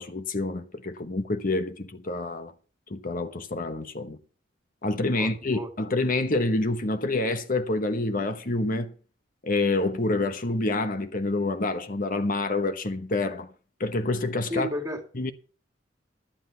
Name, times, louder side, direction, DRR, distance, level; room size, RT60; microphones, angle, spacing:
voice 1, 0.0-2.5 2.9-4.2 4.8-8.9 9.4-13.5 13.8-14.7 15.1-15.3, left 2 dB, 45° left, 1.1 m, -27 dB
voice 2, 5.2-5.7 14.5-15.0, left 1 dB, 20° right, 2.2 m, -32 dB
11.5 x 10.0 x 5.7 m
head